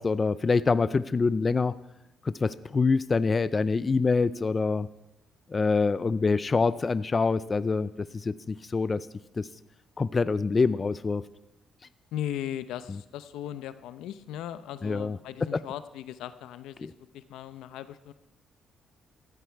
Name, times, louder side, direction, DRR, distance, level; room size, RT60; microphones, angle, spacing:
voice 1, 0.0-1.7 2.2-4.9 5.5-9.1 9.4-9.5 10.0-11.2 14.8-15.2 15.5-15.6 16.8-16.9, left 4 dB, 30° left, 16 dB, 0.5 m, -25 dB
voice 2, 12.1-18.1, left 11 dB, 90° left, 13 dB, 0.8 m, -38 dB
15.0 x 13.5 x 4.7 m, 0.93 s
cardioid pair, 90°, 0 cm